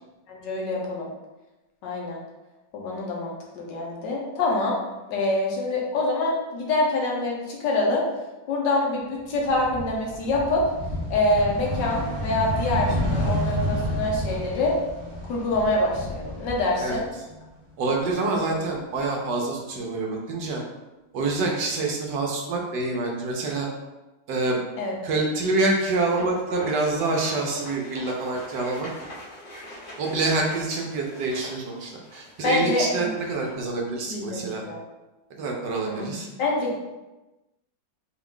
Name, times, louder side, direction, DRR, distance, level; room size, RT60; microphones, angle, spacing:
voice 1, 0.3-1.1 1.8-2.2 2.7-4.8 5.1-8.0 8.5-10.6 11.1-14.7 15.3-17.0 24.8-25.0 32.4-33.1 34.1-34.8 35.9-36.1 36.4-36.8, left 2 dB, 75° left, -2 dB, 1.4 m, -25 dB
sound 1, 9.3-17.5 17.8-19.0, equal, 40° right, 0.8 m, -30 dB
voice 2, 17.8-20.6 21.1-23.7 24.3-24.6 25.0-28.9 30.0-34.6 35.4-36.3, right 3 dB, 75° right, 0 dB, 1.3 m, -26 dB
sound 2, 26.0-33.5, left 1 dB, 45° left, 1.5 m, -43 dB
4.3 x 2.4 x 3.6 m, 1.1 s
omnidirectional pair, 2.0 m